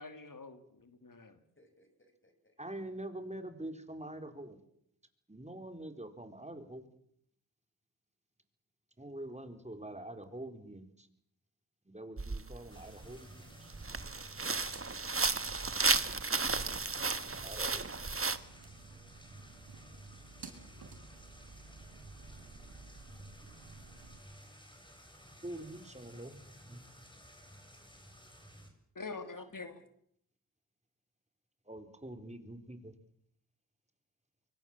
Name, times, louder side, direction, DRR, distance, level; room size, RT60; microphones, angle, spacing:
voice 1, 0.0-1.4 28.9-29.8, left 4 dB, 55° left, 8 dB, 3.0 m, -45 dB
voice 2, 1.6-2.6 15.2-16.3, left 1 dB, 30° left, 6 dB, 7.1 m, -62 dB
voice 3, 2.6-4.6 5.3-6.8 9.0-11.1 11.9-13.7 17.4-17.9 25.4-26.3 26.6-26.8 31.7-32.9, right 1 dB, 15° right, 7 dB, 4.3 m, -45 dB
sound 1, 12.2-12.4 13.0-13.2 13.7-18.4, right 3 dB, 35° right, 1.5 m, -33 dB
sound 2, 12.6-24.2, right 4 dB, 75° right, 5.2 m, -54 dB
sound 3, 12.7-28.7, equal, 10° left, 6.9 m, -55 dB
24.0 x 24.0 x 7.5 m, 0.71 s
cardioid pair, 45°, 39 cm